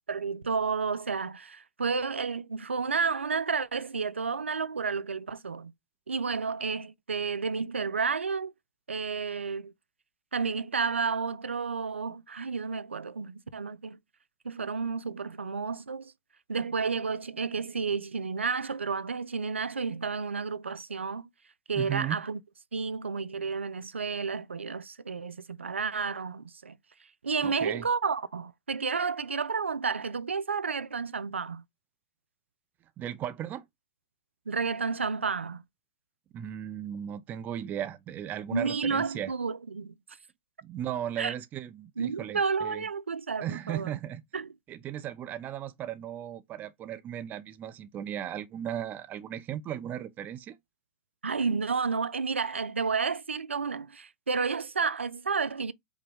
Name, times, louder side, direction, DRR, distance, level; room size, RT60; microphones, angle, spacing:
voice 1, 0.1-5.7 6.1-8.5 8.9-9.7 10.3-14.0 14.4-16.1 16.5-21.3 21.7-22.4 22.7-26.8 27.2-31.6 34.5-35.6 38.5-39.9 41.2-41.3 42.0-43.9 44.3-44.5 51.2-55.7, right 5 dB, 85° right, 0.4 m, -31 dB
voice 2, 21.7-22.2 27.4-27.8 33.0-33.6 36.3-39.3 40.6-42.9 43.4-44.2 44.7-50.6, right 10 dB, 30° right, 0.6 m, -36 dB
5.1 x 2.2 x 3.5 m
figure-of-eight pair, 105°, 6 cm